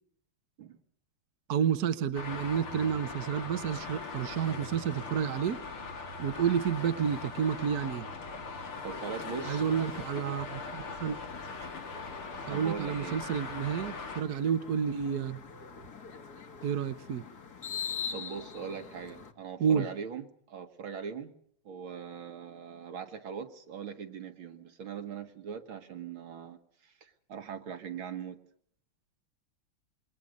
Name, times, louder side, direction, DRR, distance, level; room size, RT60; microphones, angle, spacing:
voice 1, 1.5-5.6 6.2-8.1 9.4-11.2 12.5-15.4 16.6-17.2 19.6-19.9, right 8 dB, 55° right, 10 dB, 1.4 m, -30 dB
Traffic noise roadway noise, 2.1-14.2, left 4 dB, 80° left, 3.7 m, -40 dB
voice 2, 8.8-9.9 12.5-13.2 18.1-21.3 21.6-26.6 26.8-28.4, right 7 dB, 70° right, 7 dB, 2.6 m, -41 dB
sound 1, 11.3-19.3, left 7 dB, 50° left, 2.2 m, -43 dB
27.0 x 23.0 x 5.3 m, 0.63 s
omnidirectional pair, 2.3 m